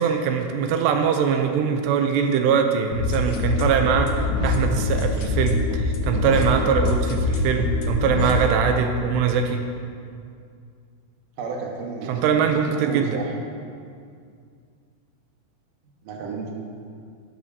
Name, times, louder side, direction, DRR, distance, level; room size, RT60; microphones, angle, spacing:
voice 1, 0.0-9.6 12.1-13.2, right 6 dB, 90° right, 5 dB, 2.8 m, -22 dB
sound 1, 2.9-8.4, left 3 dB, 90° left, 1.6 m, -24 dB
voice 2, 11.4-12.4 12.6-13.4 16.0-16.5, right 4 dB, 65° right, -1 dB, 2.6 m, -32 dB
13.0 x 12.0 x 2.8 m, 2.3 s
omnidirectional pair, 4.8 m